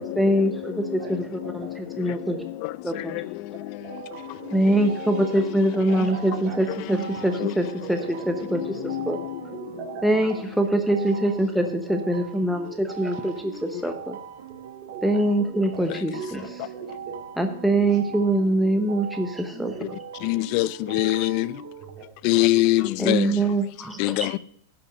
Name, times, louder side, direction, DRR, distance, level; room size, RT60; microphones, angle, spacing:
voice 1, 0.0-2.4 2.8-3.2 4.5-9.2 10.0-14.2 15.0-16.4 17.4-19.9 23.0-24.3, right 1 dB, ahead, 0.8 m, -24 dB
sound 1, 3.8-21.9, right 7 dB, 85° right, 1.2 m, -41 dB
voice 2, 4.7-6.6 7.2-7.3 7.8-8.4 9.2-9.9 14.5-14.6 14.9-15.9 16.2-17.2 19.7-19.9 21.9-22.0, right 5 dB, 30° right, 2.3 m, -40 dB
voice 3, 20.2-21.5 22.2-23.3 24.0-24.4, left 18 dB, 45° left, 0.4 m, -22 dB
11.5 x 5.8 x 6.5 m
supercardioid pair, 145°, 0 cm